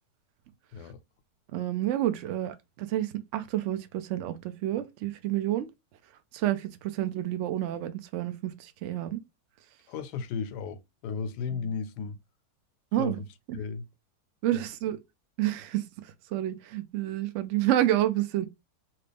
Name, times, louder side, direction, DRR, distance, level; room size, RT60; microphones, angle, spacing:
voice 1, 1.5-5.7 6.3-9.2 12.9-13.2 13.5-13.6 14.4-15.0 15.4-18.5, right 13 dB, 75° right, 0.6 m, -29 dB
voice 2, 9.9-12.2 13.0-13.3 13.5-13.8 14.5-14.7, left 5 dB, 85° left, 1.2 m, -35 dB
2.9 x 2.9 x 3.3 m
omnidirectional pair, 1.7 m